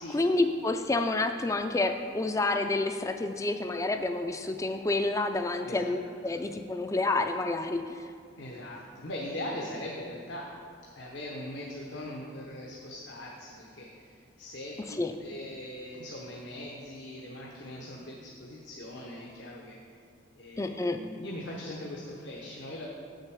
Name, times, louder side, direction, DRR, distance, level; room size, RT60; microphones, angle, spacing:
voice 1, 0.0-8.1 15.0-15.1 20.6-21.0, left 2 dB, 15° left, 7 dB, 0.3 m, -29 dB
voice 2, 8.4-10.6 11.0-19.8 20.3-22.9, left 1 dB, 65° left, -3 dB, 0.9 m, -41 dB
7.6 x 6.5 x 4.7 m, 2.4 s
head